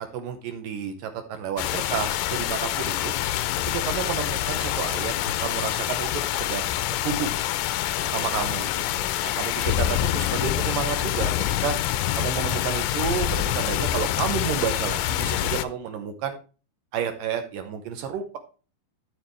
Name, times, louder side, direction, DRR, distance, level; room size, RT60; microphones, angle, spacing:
voice 1, 0.0-3.1 3.7-7.4 8.1-11.3 11.6-11.8 12.2-16.4 16.9-18.4, right 7 dB, 70° right, 7 dB, 2.4 m, -31 dB
sound 1, 1.6-15.6, left 13 dB, 80° left, 2.1 m, -26 dB
12.0 x 6.7 x 3.2 m, 0.35 s
omnidirectional pair, 4.3 m